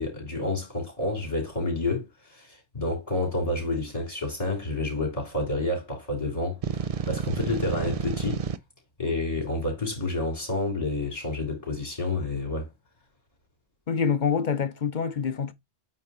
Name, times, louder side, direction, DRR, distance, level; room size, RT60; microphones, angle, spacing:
voice 1, 0.0-6.6 7.1-8.4 9.0-12.7, left 2 dB, 30° left, 3.6 m, -29 dB
sound 1, 6.6-8.6, right 6 dB, 50° right, 0.4 m, -30 dB
voice 2, 13.9-15.5, left 6 dB, 50° left, 0.8 m, -26 dB
8.7 x 3.1 x 4.3 m
omnidirectional pair, 1.1 m